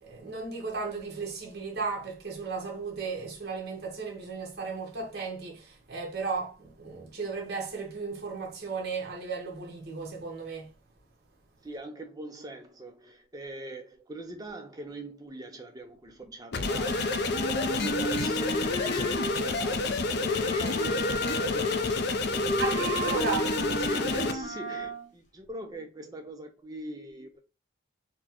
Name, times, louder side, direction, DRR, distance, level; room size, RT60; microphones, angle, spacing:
voice 1, 0.0-10.7 22.6-23.5, right 4 dB, 50° right, 1.0 m, -35 dB
voice 2, 11.6-27.4, right 2 dB, 20° right, 0.4 m, -43 dB
sound 1, 16.5-24.3, left 3 dB, 50° left, 0.4 m, -29 dB
Wind instrument woodwind instrument, 16.8-19.7 20.2-25.1, equal, 35° left, 0.8 m, -33 dB
4.2 x 2.1 x 2.9 m
head